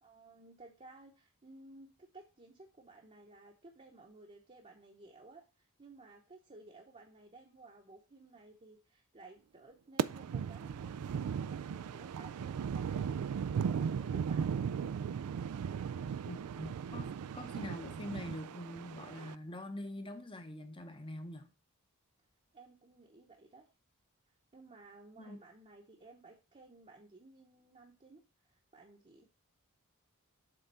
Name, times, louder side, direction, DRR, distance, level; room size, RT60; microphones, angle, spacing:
voice 1, 0.0-10.9 11.2-14.6 22.5-23.7 24.5-29.2, right 2 dB, 30° right, 0.9 m, -57 dB
sound 1, 10.0-19.3, right 7 dB, 80° right, 0.4 m, -37 dB
voice 2, 16.2-21.5 25.2-25.4, left 1 dB, 25° left, 0.8 m, -44 dB
7.7 x 3.6 x 5.4 m
head